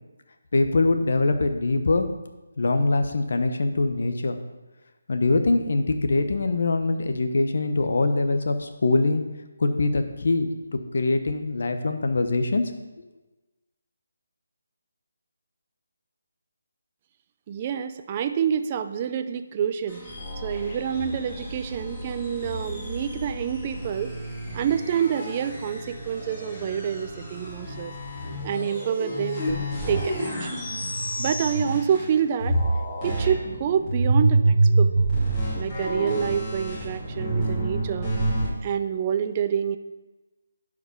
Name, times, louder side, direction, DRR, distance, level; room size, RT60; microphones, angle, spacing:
voice 1, 0.5-2.1 2.6-4.4 5.1-9.2 9.6-12.7, left 3 dB, 60° left, 7 dB, 1.0 m, -23 dB
voice 2, 17.5-20.1 20.4-24.1 24.5-27.9 28.4-30.6 31.2-32.6 33.0-34.9 35.5-38.1 38.6-39.8, right 8 dB, 25° right, 9 dB, 0.4 m, -27 dB
sound 1, 19.9-32.1 32.4-38.5, right 2 dB, 20° left, 2.6 m, -27 dB
11.0 x 5.0 x 5.3 m, 1.1 s
hypercardioid pair, 165°, 0 cm